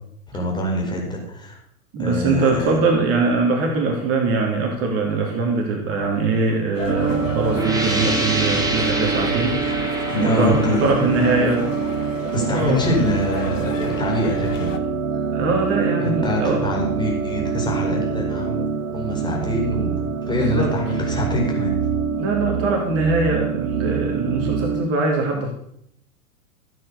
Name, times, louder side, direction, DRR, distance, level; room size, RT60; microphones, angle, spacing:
voice 1, 0.3-1.6 2.0-2.8 10.1-11.0 12.3-14.7 16.0-18.7 18.9-20.0 20.2-21.7, left 1 dB, 10° left, -1 dB, 4.8 m, -24 dB
voice 2, 1.9-9.6 10.2-11.7 12.3-12.8 13.8-13.9 15.3-16.6 20.3-20.7 22.1-25.5, right 3 dB, 30° right, 0 dB, 3.1 m, -22 dB
sound 1, 6.7-14.8, left 6 dB, 60° left, 1.8 m, -35 dB
sound 2, 6.9-24.9, right 6 dB, 75° right, 1.5 m, -25 dB
sound 3, 7.5-13.0, right 1 dB, 10° right, 3.1 m, -27 dB
14.0 x 8.9 x 6.8 m, 0.72 s
figure-of-eight pair, 105°, 44 cm